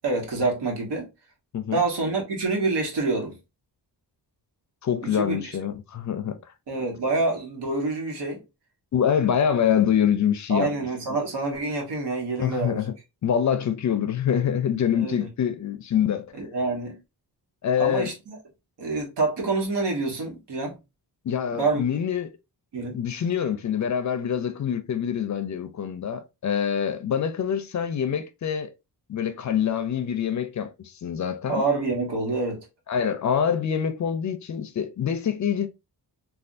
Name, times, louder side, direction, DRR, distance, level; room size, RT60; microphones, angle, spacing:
voice 1, 0.0-1.1 1.7-3.4 5.0-5.4 6.7-8.4 10.5-12.8 14.9-15.3 16.4-17.0 17.8-18.4 18.8-20.8 21.6-21.8 22.7-23.0 31.5-32.7, right 3 dB, 80° right, 1.3 m, -27 dB
voice 2, 4.8-6.4 8.9-10.7 12.4-13.0 13.2-16.3 17.6-18.1 21.2-22.3 22.9-28.7 29.1-31.6 32.9-35.7, left 8 dB, 45° left, 0.4 m, -25 dB
3.3 x 2.3 x 2.5 m
wide cardioid pair, 135°, 41 cm